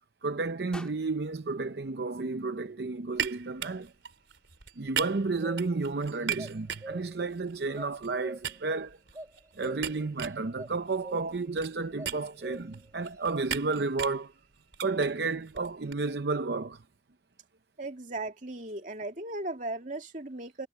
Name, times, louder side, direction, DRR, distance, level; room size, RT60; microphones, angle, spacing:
voice 1, 0.2-3.9 4.8-9.0 9.5-14.3 14.8-16.8, right 3 dB, 65° right, 0.7 m, -32 dB
sound 1, 0.7-2.9, left 1 dB, 5° left, 3.5 m, -52 dB
sound 2, 3.1-8.1 8.4-15.9, right 9 dB, 90° right, 3.9 m, -39 dB
sound 3, 5.0-5.9 6.4-7.3 7.7-8.7 9.1-10.2 10.6-10.8 11.0-11.5 12.0-12.9, right 1 dB, 20° right, 1.3 m, -44 dB
voice 2, 17.8-20.7, right 2 dB, 45° right, 2.5 m, -37 dB
head